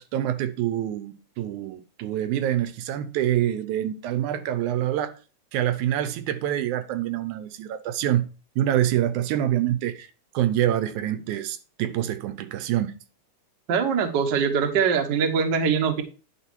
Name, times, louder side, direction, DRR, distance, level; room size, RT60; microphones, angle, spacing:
voice 1, 0.0-5.1 5.5-8.3 8.6-10.1 10.3-12.9, right 12 dB, 80° right, 2.1 m, -26 dB
voice 2, 13.7-16.0, right 6 dB, 55° right, 1.2 m, -22 dB
10.0 x 5.3 x 4.4 m
omnidirectional pair, 3.5 m